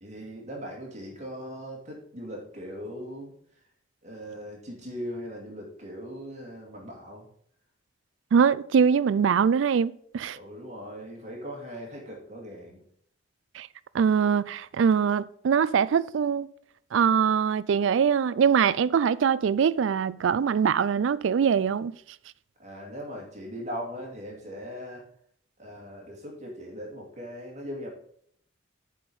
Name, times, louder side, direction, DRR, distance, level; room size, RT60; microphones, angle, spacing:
voice 1, 0.0-3.3 4.0-7.3 10.3-12.8 22.6-25.0 25.6-27.9, equal, 35° right, 2.3 m, -39 dB
voice 2, 8.3-10.4 13.5-13.7 13.9-16.5 16.9-21.9, right 7 dB, 75° right, 0.3 m, -23 dB
7.9 x 5.0 x 5.4 m
head